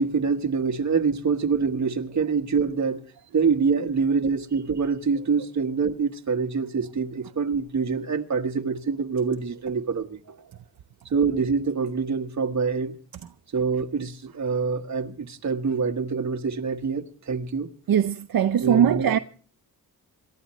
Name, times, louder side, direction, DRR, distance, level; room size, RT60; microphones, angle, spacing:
voice 1, 0.0-3.0 3.3-10.2 11.1-12.9 13.5-17.7 18.6-19.1, right 5 dB, 50° right, 1.4 m, -25 dB
voice 2, 17.9-19.2, right 9 dB, 75° right, 0.7 m, -20 dB
27.0 x 13.0 x 3.1 m
wide cardioid pair, 145°, 36 cm